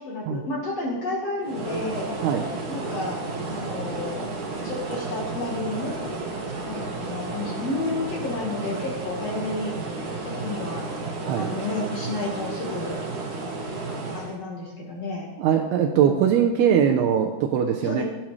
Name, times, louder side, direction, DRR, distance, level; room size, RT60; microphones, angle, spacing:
voice 1, 0.0-2.1 2.7-4.3 4.6-6.2 6.6-10.0 10.2-10.9 11.3-12.9 14.1-15.3 16.0-16.5 17.8-18.0, left 2 dB, 65° left, -2 dB, 1.6 m, -31 dB
sound 1, 1.4-14.4, right 3 dB, 55° right, 2.6 m, -32 dB
voice 2, 15.4-18.0, right 8 dB, 80° right, 3 dB, 2.4 m, -21 dB
16.5 x 9.5 x 3.2 m, 1.1 s
omnidirectional pair, 5.3 m